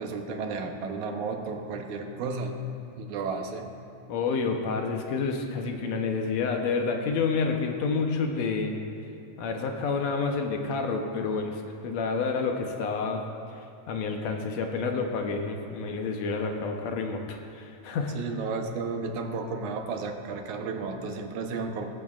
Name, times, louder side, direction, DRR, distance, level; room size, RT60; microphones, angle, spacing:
voice 1, 0.0-2.6 3.0-3.7 18.2-21.9, right 4 dB, 85° right, 4 dB, 2.4 m, -33 dB
voice 2, 4.1-8.7 9.4-13.2 13.9-18.1, left 4 dB, 70° left, 3 dB, 2.0 m, -29 dB
19.5 x 14.0 x 2.4 m, 2.5 s
omnidirectional pair, 3.3 m